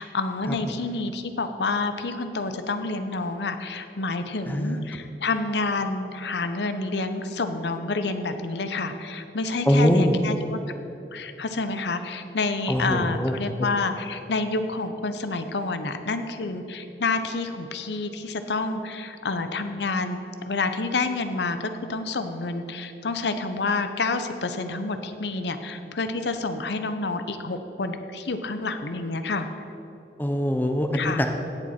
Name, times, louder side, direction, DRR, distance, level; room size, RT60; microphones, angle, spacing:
voice 1, 0.0-10.6 11.1-20.2 20.5-29.5 30.9-31.3, left 3 dB, 80° left, 9 dB, 0.8 m, -28 dB
voice 2, 4.5-4.8 9.7-10.2 12.7-13.3 30.2-31.3, equal, 10° left, 4 dB, 0.7 m, -23 dB
16.5 x 7.5 x 4.3 m, 2.9 s
head